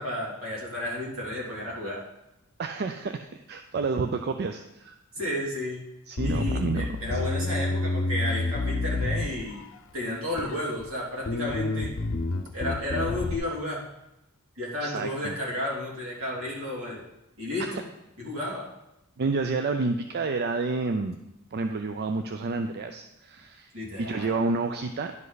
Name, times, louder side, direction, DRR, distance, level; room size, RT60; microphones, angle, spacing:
voice 1, 0.0-2.0 5.1-5.8 6.2-9.6 9.9-11.9 12.5-13.8 14.6-17.0 17.4-17.8 18.2-18.6 23.7-24.3, left 1 dB, 75° right, -4 dB, 2.8 m, -32 dB
voice 2, 2.6-5.0 6.1-7.2 14.8-15.4 17.6-17.8 19.2-21.2 21.5-23.7 24.0-25.1, right 3 dB, 50° right, 7 dB, 0.4 m, -29 dB
Bass guitar, 6.2-9.8 10.4-10.9 11.2-13.4, left 2 dB, 65° left, 0.7 m, -29 dB
11.0 x 5.4 x 4.0 m, 0.89 s
head